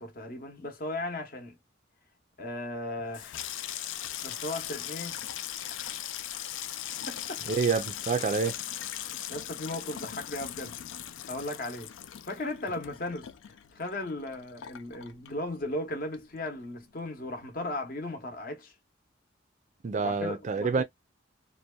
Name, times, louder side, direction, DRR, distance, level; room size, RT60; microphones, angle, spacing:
voice 1, 0.0-1.6 2.4-3.4 3.7-3.8 4.2-5.2 5.7-5.9 7.1-7.4 9.3-10.8 11.3-11.9 12.3-18.7 20.0-20.8, left 1 dB, 50° left, 0.8 m, -36 dB
Water tap faucet / Sink (filling or washing), 3.0-15.8 16.1-16.8 17.1-17.4, left 11 dB, 75° left, 0.3 m, -39 dB
voice 2, 7.5-8.6 19.8-20.8, right 5 dB, 40° right, 0.4 m, -27 dB
2.7 x 2.1 x 2.2 m
head